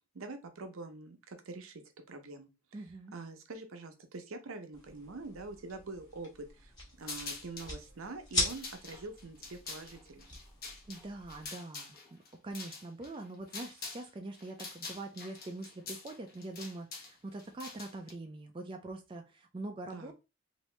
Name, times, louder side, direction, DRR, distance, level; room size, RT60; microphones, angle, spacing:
voice 1, 0.1-1.8 2.1-2.8 3.1-10.3 19.9-20.1, right 3 dB, 80° right, 6 dB, 0.7 m, -45 dB
voice 2, 2.7-3.2 10.9-12.2 12.4-20.1, right 2 dB, 25° right, 3 dB, 0.3 m, -43 dB
sound 1, 4.7-11.5, left 2 dB, 20° left, 1.2 m, -41 dB
sound 2, 7.0-7.7 8.3-14.1 14.3-18.1, left 4 dB, 45° left, 0.9 m, -45 dB
2.9 x 2.6 x 3.2 m, 0.28 s
head